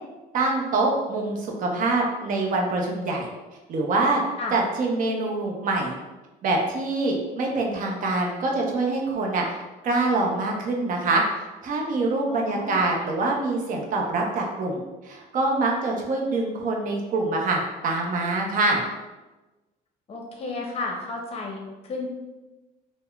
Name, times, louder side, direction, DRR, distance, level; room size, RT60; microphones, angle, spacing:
voice 1, 0.3-3.3 3.7-4.2 4.5-6.0 6.4-9.6 9.8-18.8, right 2 dB, 55° right, 0 dB, 0.6 m, -25 dB
voice 2, 12.3-12.8 20.1-22.1, left 3 dB, 35° left, 0 dB, 0.6 m, -32 dB
3.4 x 2.0 x 2.3 m, 1.1 s
cardioid pair, 110°, 17 cm